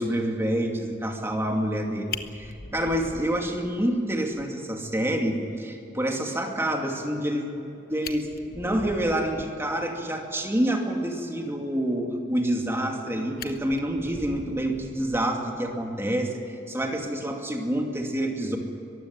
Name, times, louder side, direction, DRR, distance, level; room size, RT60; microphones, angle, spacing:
voice 1, 0.0-8.3 8.5-18.6, right 1 dB, 15° right, 2 dB, 2.5 m, -27 dB
Fire, 1.7-1.8 2.1-4.0 4.4-4.5 4.9-5.0 5.3-5.4 7.6-7.7 7.9-9.7 12.5-13.0 13.4-15.6 16.9-17.1, left 5 dB, 55° left, 1.2 m, -41 dB
23.0 x 15.5 x 9.6 m, 2.7 s
head